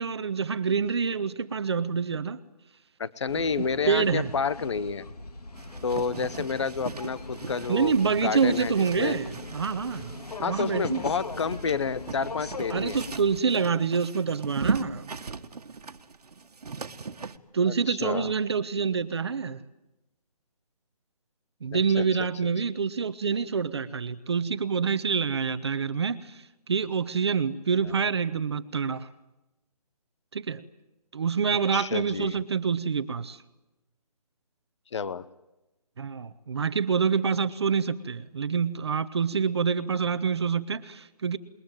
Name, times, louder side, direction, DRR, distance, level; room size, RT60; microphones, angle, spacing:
voice 1, 0.0-2.4 3.6-4.3 7.7-11.1 12.7-15.1 17.5-19.6 21.6-29.1 30.3-30.6 31.1-33.4 36.0-41.4, right 6 dB, 40° right, 1.0 m, -27 dB
voice 2, 3.0-5.0 5.8-9.2 10.4-13.0 17.7-18.3 21.7-22.0 31.7-32.4 34.9-35.3, left 5 dB, 45° left, 1.0 m, -30 dB
sound 1, 3.3-13.4, left 3 dB, 70° left, 3.4 m, -41 dB
sound 2, 5.5-17.4, right 4 dB, 70° right, 1.7 m, -38 dB
27.5 x 21.5 x 9.1 m
hypercardioid pair, 170°, 21 cm